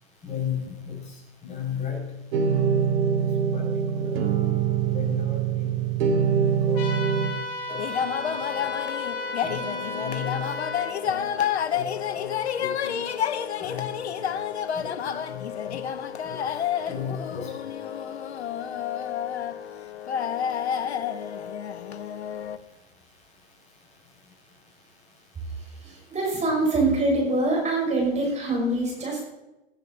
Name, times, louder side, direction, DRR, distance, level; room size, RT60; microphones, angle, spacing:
voice 1, 0.2-2.0 2.5-2.7 3.2-3.6 3.9-4.2 4.9-5.9 6.3-6.8 7.7-8.6 9.4-10.5 11.0-11.9 12.2-12.3 12.6-13.0 13.6-14.2 14.7-15.8 16.2-16.4 16.9-17.5, left 7 dB, 20° left, -1 dB, 6.5 m, -36 dB
sound 1, 2.3-7.3, right 7 dB, 65° right, 2.7 m, -24 dB
sound 2, 6.7-10.9, left 2 dB, 55° left, 4.1 m, -33 dB
sound 3, 7.7-22.6, left 9 dB, 80° left, 1.0 m, -30 dB
voice 2, 25.6-29.2, right 2 dB, 20° right, -1 dB, 5.9 m, -24 dB
19.5 x 11.0 x 4.1 m, 0.98 s
hypercardioid pair, 105°, 32 cm